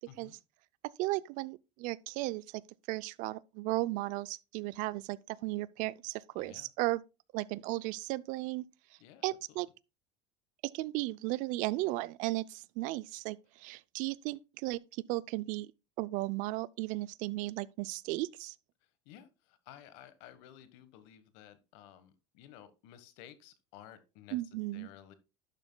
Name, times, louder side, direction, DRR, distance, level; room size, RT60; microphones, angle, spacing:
voice 1, 1.0-2.6 2.9-7.0 7.3-8.6 9.2-9.7 10.7-14.8 15.1-15.7 16.0-18.5 24.3-24.9, right 19 dB, 60° right, 0.5 m, -35 dB
voice 2, 6.4-6.7 9.0-9.6 19.0-24.4 24.7-25.1, left 11 dB, 70° left, 1.4 m, -54 dB
11.5 x 7.1 x 2.2 m
supercardioid pair, 105°, 15 cm